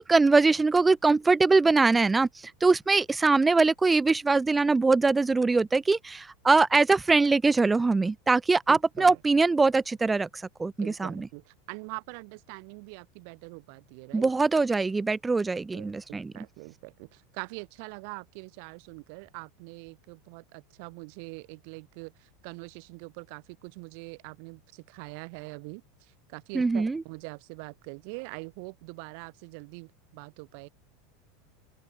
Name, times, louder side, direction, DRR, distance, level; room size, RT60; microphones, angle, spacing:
voice 1, 0.0-11.1 14.1-16.3 26.5-27.0, right 3 dB, 15° right, 0.9 m, -23 dB
voice 2, 8.7-9.2 10.8-14.3 15.7-30.7, right 38 dB, 60° right, 3.8 m, -43 dB
open air
hypercardioid pair, 90°, 0 cm